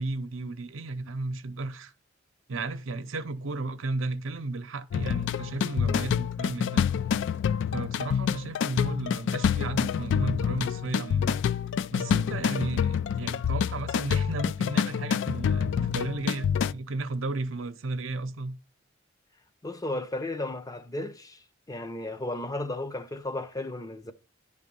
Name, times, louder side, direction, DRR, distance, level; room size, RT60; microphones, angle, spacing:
voice 1, 0.0-1.9 2.5-6.8 7.7-11.4 11.9-18.6, right 2 dB, 90° right, 0.7 m, -34 dB
sound 1, 4.9-16.7, left 7 dB, 65° left, 0.3 m, -27 dB
voice 2, 19.6-24.1, left 2 dB, 20° left, 0.6 m, -34 dB
10.0 x 3.6 x 5.3 m
head